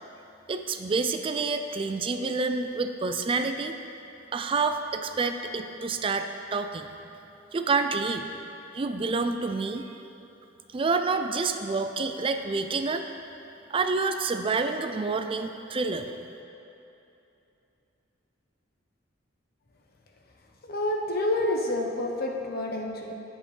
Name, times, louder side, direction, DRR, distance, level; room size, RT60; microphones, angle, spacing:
voice 1, 0.5-3.8 4.3-6.9 7.5-8.3 8.7-9.9 10.7-13.0 13.7-16.1, right 4 dB, 30° right, 7 dB, 0.4 m, -28 dB
voice 2, 20.6-23.1, left 1 dB, 55° left, 1 dB, 0.9 m, -28 dB
16.0 x 5.4 x 3.3 m, 2.9 s
head